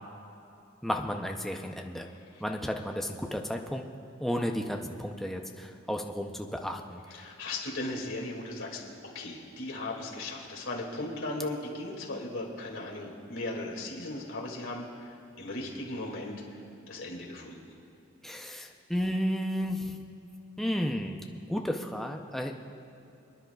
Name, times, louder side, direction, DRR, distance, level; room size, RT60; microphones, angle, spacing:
voice 1, 0.8-2.1 2.4-3.9 4.2-7.2 18.2-20.0 20.6-22.5, equal, ahead, 2 dB, 0.5 m, -33 dB
voice 2, 7.1-8.8 9.1-16.4 16.9-17.6, left 2 dB, 75° left, -1 dB, 2.4 m, -37 dB
28.0 x 10.0 x 2.3 m, 2.8 s
head